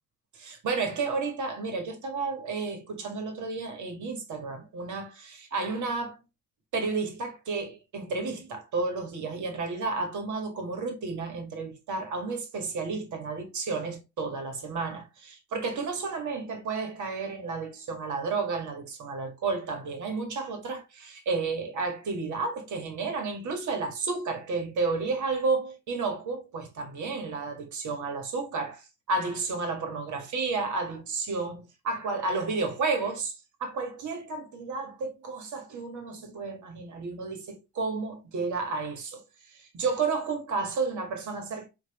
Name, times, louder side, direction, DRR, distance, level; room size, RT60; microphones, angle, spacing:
voice 1, 0.3-6.2 6.7-33.3 33.6-39.2 39.5-41.7, right 4 dB, 60° right, 1.7 m, -32 dB
4.9 x 3.0 x 3.0 m
supercardioid pair, 70°, 34 cm